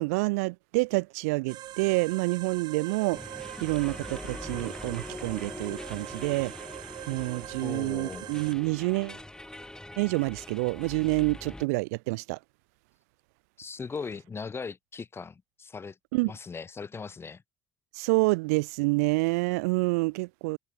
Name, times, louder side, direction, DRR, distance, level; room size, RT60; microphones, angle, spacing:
voice 1, 0.0-6.5 7.1-9.2 10.0-12.4 16.1-16.3 18.0-20.6, right 26 dB, 85° right, 0.5 m, -28 dB
sound 1, 1.5-8.5, right 13 dB, 60° right, 1.5 m, -43 dB
sound 2, 3.1-11.6, left 1 dB, 10° left, 1.6 m, -43 dB
voice 2, 7.6-8.2 13.6-16.0 16.3-17.4, left 5 dB, 30° left, 2.6 m, -39 dB
hypercardioid pair, 70°, 8 cm